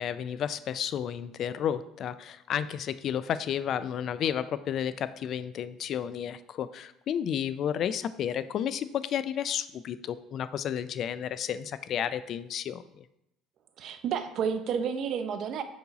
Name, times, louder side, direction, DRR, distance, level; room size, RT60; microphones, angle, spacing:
voice 1, 0.0-13.0, left 9 dB, 50° left, 14 dB, 0.3 m, -32 dB
voice 2, 13.8-15.6, right 7 dB, 55° right, 9 dB, 0.6 m, -30 dB
5.3 x 4.7 x 4.0 m, 0.84 s
supercardioid pair, 110°, 0 cm